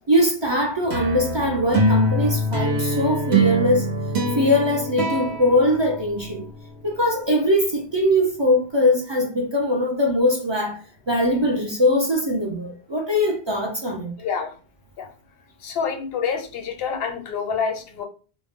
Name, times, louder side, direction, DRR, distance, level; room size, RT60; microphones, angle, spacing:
voice 1, 0.1-3.9 4.4-6.5 6.8-10.8 11.1-14.1, left 1 dB, 40° right, 0.4 m, -21 dB
sound 1, 0.9-6.5, right 1 dB, 85° right, 1.0 m, -24 dB
voice 2, 14.2-14.6 14.9-15.1 15.6-18.0, left 6 dB, 70° left, 0.8 m, -27 dB
2.4 x 2.0 x 3.5 m
omnidirectional pair, 1.1 m